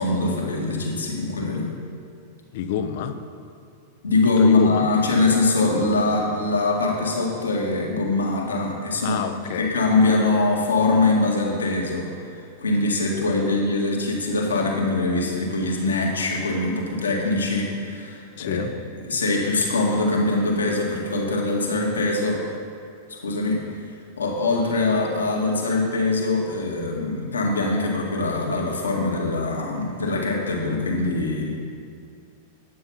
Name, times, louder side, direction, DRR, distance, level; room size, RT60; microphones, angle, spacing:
voice 1, 0.0-1.7 4.0-9.2 9.6-12.1 12.3-18.6 19.1-22.4 23.2-23.6 24.2-31.5, left 3 dB, 90° left, -2 dB, 1.8 m, -23 dB
voice 2, 2.5-3.2 4.2-4.9 9.0-9.8 18.4-18.7, left 8 dB, 60° left, 9 dB, 0.7 m, -28 dB
9.6 x 7.1 x 5.5 m, 2.4 s
hypercardioid pair, 105°, 0 cm